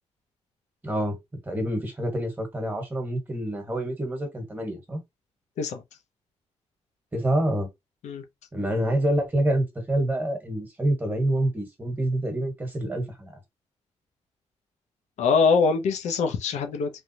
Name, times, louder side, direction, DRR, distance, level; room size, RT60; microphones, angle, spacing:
voice 1, 0.8-1.2 1.4-5.0 7.1-7.7 8.5-13.4, right 1 dB, 15° right, 1.4 m, -27 dB
voice 2, 15.2-16.9, left 5 dB, 80° left, 0.7 m, -23 dB
3.4 x 2.3 x 2.8 m
cardioid pair, 95°, 12 cm